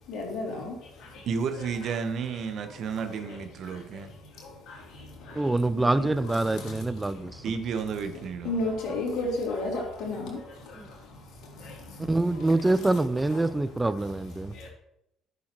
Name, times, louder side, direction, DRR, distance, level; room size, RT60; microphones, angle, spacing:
voice 1, 0.1-1.3 3.3-3.4 3.7-4.0 4.3-7.4 8.4-13.0 13.3-13.5 13.9-14.0 14.4-14.7, left 2 dB, 60° left, -1 dB, 3.3 m, -35 dB
voice 2, 1.3-4.1 7.4-8.5, right 6 dB, 55° right, 7 dB, 1.2 m, -32 dB
voice 3, 5.4-7.4 10.8-10.9 12.1-14.5, right 2 dB, 15° right, 14 dB, 0.6 m, -25 dB
13.0 x 6.9 x 3.1 m, 0.81 s
figure-of-eight pair, 50°, 0 cm